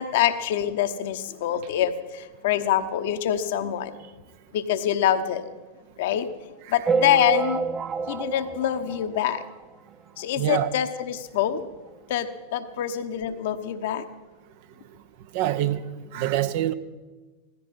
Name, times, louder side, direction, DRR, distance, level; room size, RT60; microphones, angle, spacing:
voice 1, 0.0-4.0 4.5-5.5 6.0-6.3 6.7-7.6 8.0-9.4 10.2-11.7 12.1-14.1, left 10 dB, 55° left, 1.0 m, -25 dB
sound 1, 6.9-9.7 10.2-10.3 10.5-10.6 10.9-11.0 11.9-12.0 12.4-12.5, right 5 dB, 20° right, 0.6 m, -28 dB
voice 2, 10.4-10.7 15.3-15.8 16.1-16.7, right 12 dB, 50° right, 0.8 m, -24 dB
17.0 x 14.0 x 5.6 m
figure-of-eight pair, 90°, 0 cm